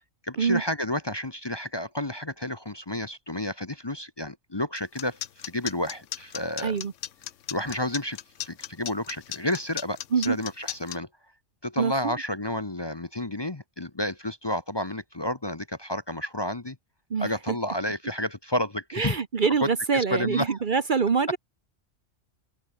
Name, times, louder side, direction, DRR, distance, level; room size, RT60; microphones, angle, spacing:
voice 1, 0.2-6.8 7.5-8.2 8.4-11.1 11.6-16.8 17.2-19.2 19.6-20.6, left 1 dB, 20° left, 1.0 m, -31 dB
sound 1, 4.8-11.0, left 11 dB, 85° left, 1.1 m, -35 dB
voice 2, 11.8-12.1 17.1-17.6 18.9-21.4, right 5 dB, 45° right, 1.0 m, -25 dB
omnidirectional pair, 1.2 m